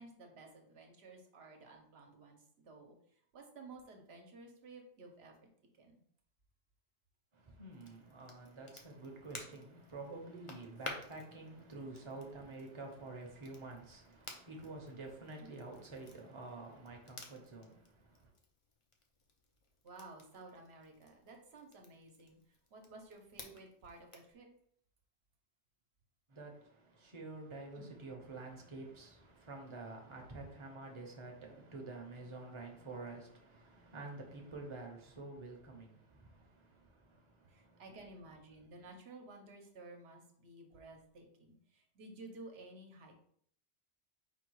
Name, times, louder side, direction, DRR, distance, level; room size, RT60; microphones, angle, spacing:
voice 1, 0.0-5.3 5.7-6.0 19.8-22.4 22.7-24.5 27.8-27.9 37.5-43.2, right 2 dB, 70° right, 1.1 m, -54 dB
voice 2, 7.6-17.7 26.3-26.5 27.0-36.0, right 2 dB, 30° right, 0.8 m, -48 dB
Crackle, 7.7-24.4, left 2 dB, 35° left, 0.6 m, -54 dB
4.5 x 2.3 x 4.6 m
omnidirectional pair, 1.1 m